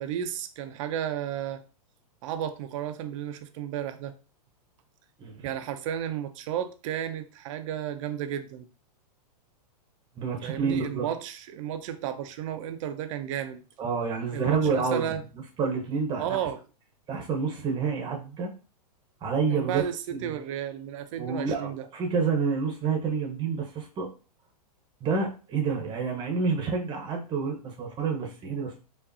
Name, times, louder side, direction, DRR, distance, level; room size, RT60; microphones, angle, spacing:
voice 1, 0.0-1.6 2.2-4.1 5.4-8.7 10.4-13.6 14.3-15.2 16.2-16.6 19.5-21.8, right 10 dB, 50° right, 0.6 m, -33 dB
voice 2, 10.1-11.1 13.8-15.1 15.6-16.4 17.1-18.5 19.2-19.8 20.1-20.3 21.2-24.1 25.0-28.8, right 5 dB, 25° right, 1.0 m, -28 dB
4.8 x 2.6 x 2.6 m
hypercardioid pair, 130°, 20 cm